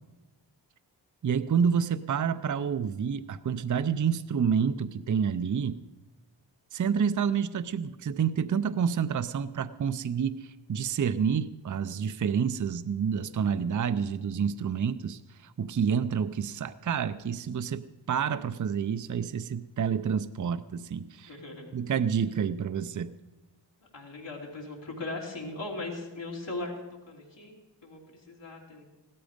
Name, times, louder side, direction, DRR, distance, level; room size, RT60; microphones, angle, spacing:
voice 1, 1.2-5.8 6.7-21.4 21.7-23.1, right 7 dB, 45° right, 12 dB, 0.6 m, -28 dB
voice 2, 21.3-21.7 23.9-26.7 27.1-27.5 27.8-28.0 28.3-28.8, left 2 dB, 75° left, -2 dB, 3.3 m, -38 dB
16.0 x 13.0 x 5.2 m, 1.1 s
cardioid pair, 60°, 44 cm